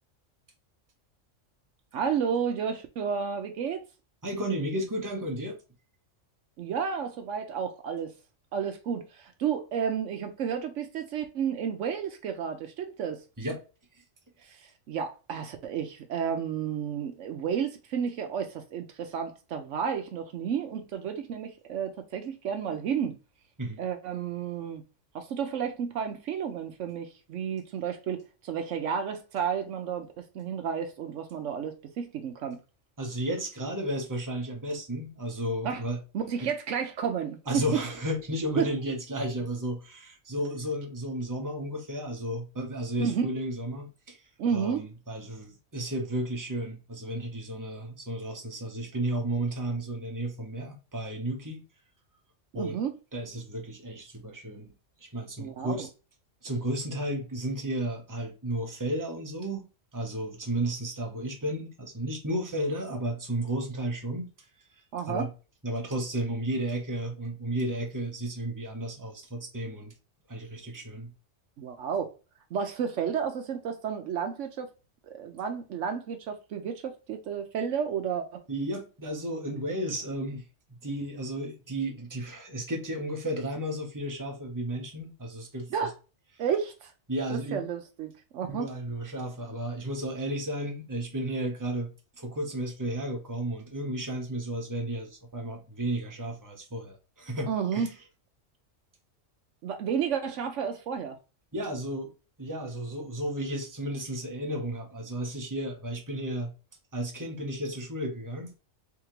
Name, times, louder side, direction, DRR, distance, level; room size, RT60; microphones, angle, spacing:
voice 1, 1.9-3.8 6.6-8.1 8.5-13.2 14.4-23.2 23.8-24.8 25.1-32.6 35.6-35.8 36.1-37.8 38.6-38.7 43.0-43.3 44.4-44.9 52.5-52.9 55.4-55.9 64.9-65.3 71.6-72.1 72.5-74.7 75.0-78.4 85.7-85.9 86.4-86.9 87.3-88.7 97.5-97.9 99.6-101.2, right 7 dB, 75° right, 1.0 m, -31 dB
voice 2, 4.2-5.6 13.4-13.6 13.9-14.0 23.6-23.8 33.0-36.0 36.4-36.5 37.5-51.6 52.5-52.8 53.1-54.7 55.0-55.9 56.4-64.3 65.1-65.3 65.6-69.9 70.3-71.1 78.5-85.9 87.1-87.6 88.5-97.9 101.5-102.1 102.4-106.5 106.9-108.5, right 1 dB, 15° right, 1.0 m, -33 dB
3.6 x 3.5 x 3.0 m
omnidirectional pair, 1.3 m